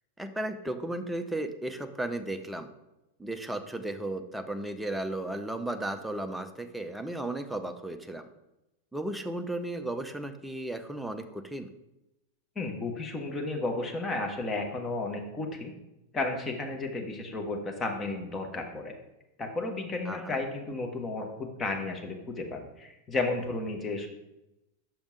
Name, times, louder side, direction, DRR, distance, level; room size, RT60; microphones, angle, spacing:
voice 1, 0.2-2.7 3.2-8.3 8.9-11.7 20.1-20.4, right 1 dB, 5° right, 6 dB, 0.6 m, -35 dB
voice 2, 12.5-15.7 16.1-18.9 19.4-24.1, left 2 dB, 20° left, 3 dB, 1.2 m, -33 dB
6.1 x 5.2 x 5.1 m, 0.93 s
figure-of-eight pair, 90°, 0 cm